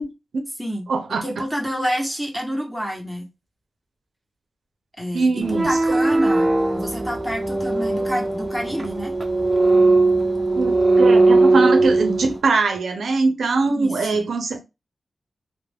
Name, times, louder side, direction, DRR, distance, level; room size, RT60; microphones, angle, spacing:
voice 1, 0.0-0.4 0.9-1.4 5.1-5.8 10.6-14.6, right 3 dB, 90° right, 0.5 m, -22 dB
voice 2, 1.2-3.3 5.0-9.1 13.7-14.3, equal, ahead, 0.8 m, -28 dB
sound 1, 5.4-12.4, right 2 dB, 15° right, 0.5 m, -19 dB
2.3 x 2.1 x 3.3 m
wide cardioid pair, 100°, 0 cm